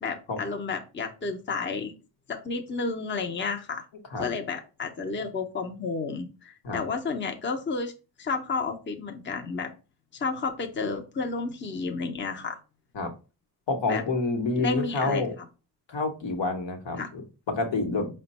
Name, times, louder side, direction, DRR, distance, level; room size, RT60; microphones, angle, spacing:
voice 1, 0.0-1.9 2.3-3.8 4.2-7.9 8.2-9.7 10.1-12.6 13.9-14.0 14.5-15.2 17.0-17.1, left 4 dB, 25° left, 5 dB, 0.6 m, -31 dB
voice 2, 13.7-15.4 15.9-18.1, left 3 dB, 70° left, 5 dB, 1.1 m, -28 dB
5.1 x 2.2 x 4.0 m, 0.32 s
wide cardioid pair, 120°, 45 cm